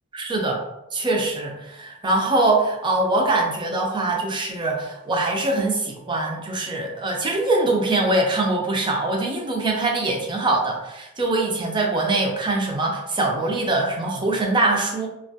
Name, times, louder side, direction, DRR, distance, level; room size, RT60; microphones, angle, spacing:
voice 1, 0.1-0.6 0.9-15.1, right 2 dB, 20° right, 0 dB, 0.4 m, -23 dB
2.3 x 2.2 x 2.7 m, 0.91 s
head